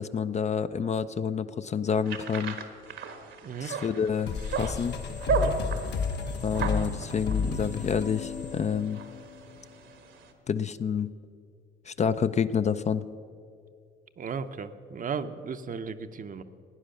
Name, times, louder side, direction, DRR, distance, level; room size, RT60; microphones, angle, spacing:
voice 1, 0.0-2.6 3.6-5.0 6.4-9.0 10.5-11.1 11.9-13.0, left 7 dB, 35° left, 12 dB, 0.4 m, -28 dB
sound 1, 2.1-10.3, right 4 dB, 75° right, 1.4 m, -35 dB
sound 2, 4.3-9.6, left 4 dB, 60° left, 1.3 m, -32 dB
voice 2, 14.2-16.4, right 6 dB, 45° right, 10 dB, 0.7 m, -35 dB
15.5 x 9.6 x 6.5 m, 2.3 s
cardioid pair, 90°, 20 cm